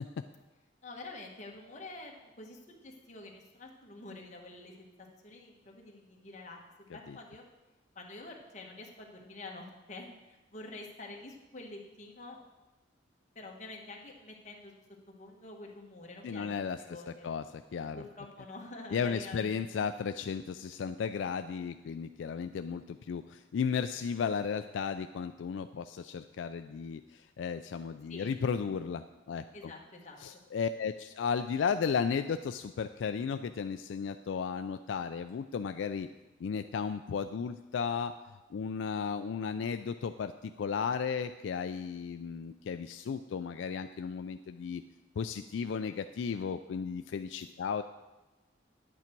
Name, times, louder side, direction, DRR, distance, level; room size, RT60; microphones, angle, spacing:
voice 1, 0.8-4.9 5.2-7.5 7.9-12.4 13.3-14.8 15.1-16.5 16.8-17.3 17.9-19.7 28.1-28.3 29.5-30.2, left 2 dB, 40° left, 0 dB, 1.4 m, -47 dB
voice 2, 16.2-16.8 17.2-17.4 17.7-18.0 18.9-29.4 30.2-36.1 36.4-38.1 38.5-44.8 45.2-47.8, left 6 dB, 75° left, 9 dB, 0.3 m, -34 dB
9.9 x 8.5 x 4.5 m, 1.1 s
head